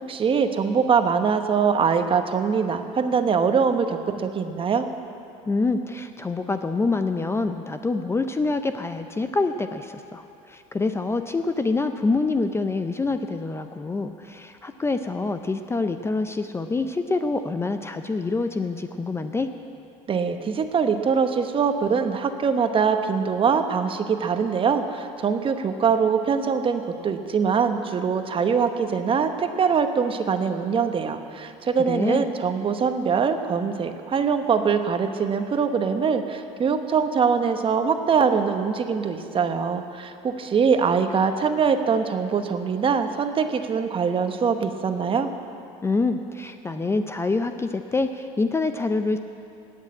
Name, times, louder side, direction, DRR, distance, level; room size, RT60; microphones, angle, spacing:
voice 1, 0.1-4.9 20.1-45.3, right 6 dB, 35° right, 7 dB, 1.0 m, -23 dB
voice 2, 5.5-19.5 31.9-32.3 45.8-49.2, left 3 dB, 15° left, 8 dB, 0.5 m, -26 dB
18.0 x 6.6 x 8.7 m, 2.8 s
supercardioid pair, 100°, 16 cm